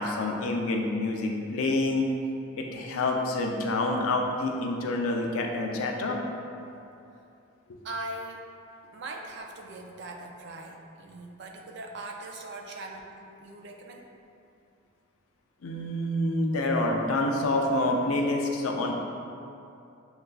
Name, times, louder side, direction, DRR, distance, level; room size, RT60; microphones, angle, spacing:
voice 1, 0.0-2.1 2.5-6.2 15.6-18.9, left 2 dB, 80° left, 1 dB, 0.5 m, -27 dB
voice 2, 7.8-8.4 8.9-14.1, right 2 dB, 55° right, 2 dB, 0.4 m, -40 dB
6.4 x 2.4 x 2.3 m, 2.6 s
head